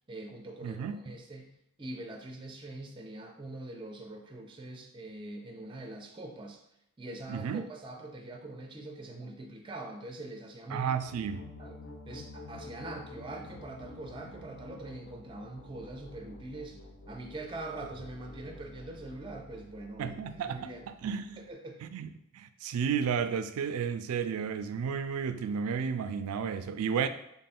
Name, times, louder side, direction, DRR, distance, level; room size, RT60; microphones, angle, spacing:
voice 1, 0.1-1.5 1.8-6.6 7.0-11.0 11.6-11.8 12.1-16.8 17.1-20.2 20.4-20.9 21.4-21.8, right 2 dB, 20° right, 2 dB, 0.4 m, -43 dB
voice 2, 0.6-1.0 7.3-7.6 10.7-11.5 20.0-21.4 21.8-27.1, right 7 dB, 85° right, 10 dB, 0.3 m, -32 dB
sound 1, 10.9-21.5, left 2 dB, 55° left, 0.4 m, -50 dB
3.4 x 2.3 x 4.2 m, 0.79 s
head